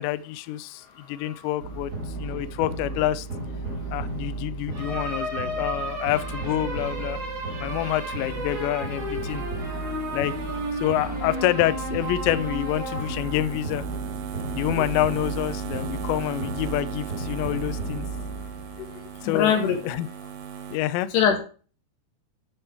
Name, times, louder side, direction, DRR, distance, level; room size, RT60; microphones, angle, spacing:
voice 1, 0.0-1.9 2.2-3.3 3.9-7.2 7.6-9.4 10.1-10.4 10.8-13.8 14.5-18.0 19.2-19.6 19.8-20.1 20.7-21.1, left 14 dB, 90° left, 14 dB, 2.5 m, -27 dB
sound 1, 1.6-19.2, right 2 dB, 55° right, 1.0 m, -32 dB
sound 2, 7.7-20.8, right 8 dB, 80° right, 3.6 m, -39 dB
voice 2, 9.8-10.2 14.8-14.9 18.8-18.9 19.2-19.8 21.1-21.4, left 8 dB, 65° left, 5 dB, 3.2 m, -24 dB
11.5 x 5.1 x 4.5 m, 0.37 s
omnidirectional pair, 5.7 m